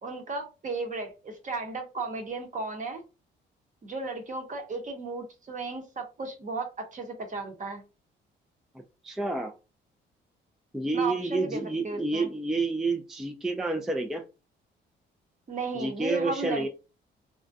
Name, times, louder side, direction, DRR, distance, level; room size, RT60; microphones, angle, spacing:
voice 1, 0.0-3.0 3.8-7.8 10.9-12.3 15.5-16.7, right 3 dB, 40° right, 4 dB, 0.8 m, -35 dB
voice 2, 9.0-9.5 10.7-14.2 15.7-16.7, right 3 dB, ahead, 4 dB, 0.3 m, -29 dB
2.4 x 2.1 x 2.5 m, 0.30 s
cardioid pair, 90°, 20 cm